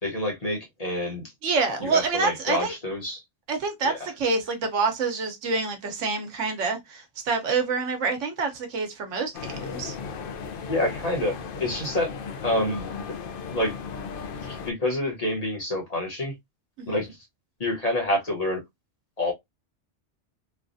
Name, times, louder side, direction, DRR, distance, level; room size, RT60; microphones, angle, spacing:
voice 1, 0.0-1.2 1.8-3.2 4.0-4.1 10.7-12.1 12.4-13.0 13.5-13.8 14.4-16.3 16.9-17.1 17.6-18.6 19.2-19.3, left 1 dB, 35° left, 1.1 m, -27 dB
voice 2, 1.4-2.7 3.5-10.0 16.8-17.1, right 4 dB, 85° right, 1.2 m, -27 dB
sound 1, 9.3-14.7, left 5 dB, 60° left, 0.6 m, -36 dB
3.2 x 2.3 x 2.5 m
omnidirectional pair, 1.2 m